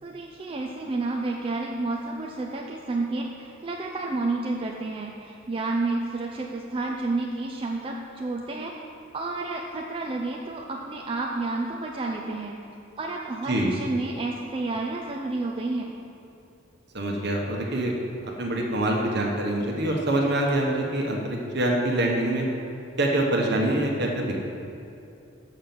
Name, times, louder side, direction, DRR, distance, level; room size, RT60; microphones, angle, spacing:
voice 1, 0.0-8.8 9.1-12.6 13.0-15.9, right 2 dB, 25° right, 0 dB, 0.4 m, -30 dB
voice 2, 16.9-17.9 18.4-22.5 23.0-24.3, right 1 dB, 55° right, 0 dB, 1.2 m, -25 dB
6.6 x 5.9 x 7.0 m, 2.7 s
head